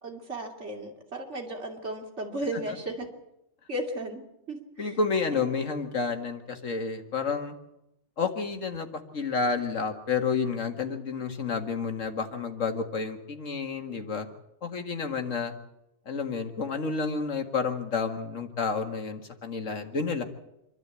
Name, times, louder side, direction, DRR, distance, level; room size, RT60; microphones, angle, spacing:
voice 1, 0.0-3.1 3.7-5.0 5.3-5.5, right 1 dB, 65° right, 2 dB, 3.0 m, -35 dB
voice 2, 4.8-7.5 8.2-14.3 14.6-15.5 16.1-20.2, left 5 dB, 80° left, 6 dB, 2.1 m, -30 dB
26.5 x 12.0 x 8.2 m, 0.88 s
omnidirectional pair, 1.3 m